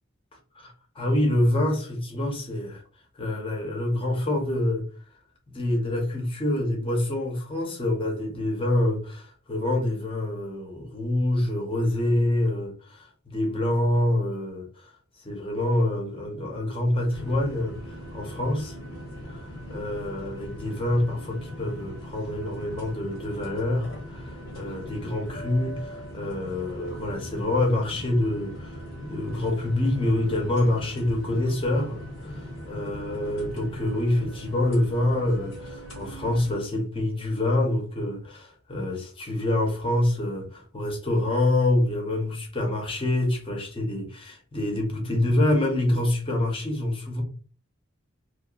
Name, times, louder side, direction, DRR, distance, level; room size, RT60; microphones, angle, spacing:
voice 1, 0.6-2.8 3.2-4.8 5.5-14.9 15.2-17.8 18.1-18.8 19.3-19.4 19.7-47.2, left 1 dB, 25° left, 0.8 m, -26 dB
sound 1, 17.1-36.6, equal, 70° left, 0.9 m, -40 dB
2.8 x 2.1 x 2.4 m
head